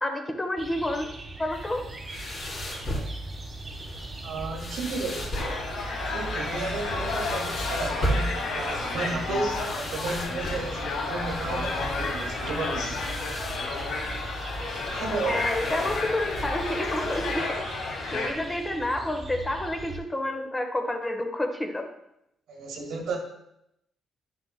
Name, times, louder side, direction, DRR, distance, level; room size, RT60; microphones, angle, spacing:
voice 1, 0.0-1.1 1.4-1.9 15.3-21.9, left 1 dB, 20° left, 3 dB, 1.1 m, -29 dB
sound 1, 0.6-20.0, right 3 dB, 35° right, 1.3 m, -41 dB
sound 2, 1.5-17.4, equal, 60° left, 3.0 m, -36 dB
voice 2, 4.2-5.3 6.0-13.0 14.9-15.4 22.5-23.2, right 3 dB, 85° right, 1 dB, 1.9 m, -33 dB
sound 3, 5.3-18.3, left 3 dB, 85° left, 1.3 m, -32 dB
9.8 x 7.0 x 2.2 m, 0.80 s
cardioid pair, 90°, 0 cm